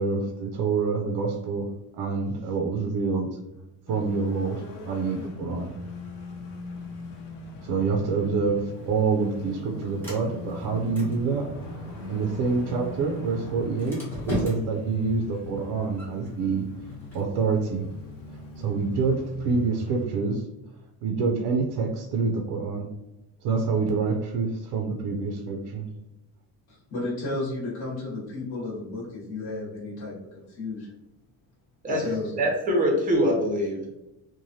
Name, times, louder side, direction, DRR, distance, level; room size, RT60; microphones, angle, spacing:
voice 1, 0.0-1.7 1.9-3.4 3.9-5.7 7.6-11.5 12.1-16.7 17.1-17.9 18.6-20.4 21.0-22.9 23.4-25.9, right 4 dB, 70° right, 2 dB, 0.5 m, -27 dB
sound 1, 3.9-20.1, left 2 dB, 70° left, 0.8 m, -41 dB
Sliding door, 8.7-18.7, equal, 5° left, 0.9 m, -39 dB
voice 2, 26.7-30.9 31.8-32.5, left 2 dB, 30° left, -8 dB, 1.0 m, -33 dB
voice 3, 32.4-33.9, equal, 20° right, -1 dB, 0.6 m, -23 dB
3.1 x 2.2 x 2.6 m, 0.93 s
cardioid pair, 175°, 41 cm